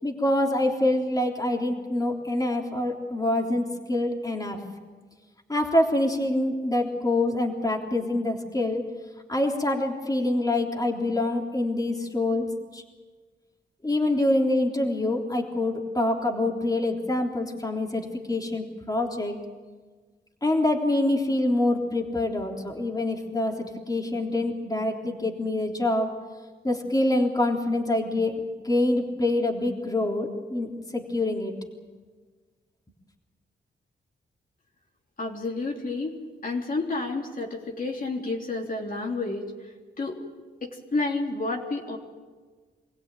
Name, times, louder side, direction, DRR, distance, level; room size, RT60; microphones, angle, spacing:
voice 1, 0.0-4.6 5.5-8.8 9.3-12.5 12.7-12.8 13.8-19.4 20.4-26.1 26.6-31.5, left 1 dB, 20° left, 1 dB, 3.5 m, -25 dB
voice 2, 35.2-36.2 36.4-39.5 40.0-40.3 40.6-42.0, left 3 dB, 50° left, -1 dB, 3.5 m, -30 dB
25.5 x 16.5 x 9.2 m, 1.4 s
cardioid pair, 65°, 19 cm